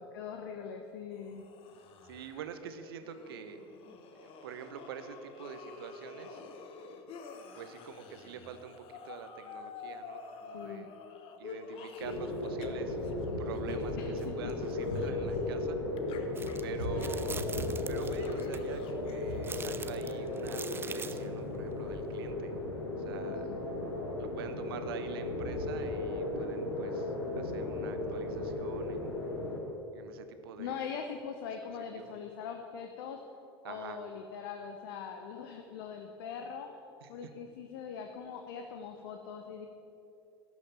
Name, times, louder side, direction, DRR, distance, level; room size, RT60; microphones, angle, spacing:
voice 1, 0.0-1.4 10.5-10.9 13.7-14.1 16.9-17.2 23.2-23.6 30.6-33.2 33.6-36.7 37.1-39.7, left 7 dB, 60° left, 4 dB, 0.9 m, -42 dB
sound 1, 1.1-12.7 12.9-15.6 16.0-20.4, left 5 dB, 45° left, 1.2 m, -50 dB
voice 2, 2.0-3.6 4.1-6.4 7.5-11.0 11.4-13.0 13.4-15.8 16.6-17.4 17.9-22.5 23.0-23.5 24.2-29.2 29.9-30.8 31.9-32.1 33.6-34.0 37.0-37.3, right 7 dB, 65° right, 9 dB, 1.0 m, -45 dB
sound 2, 12.0-29.6, left 2 dB, 75° left, 1.9 m, -35 dB
sound 3, 16.4-16.6 17.0-18.6 19.4-21.3, right 5 dB, 15° right, 0.6 m, -43 dB
11.5 x 6.3 x 8.8 m, 2.8 s
figure-of-eight pair, 75°, 13 cm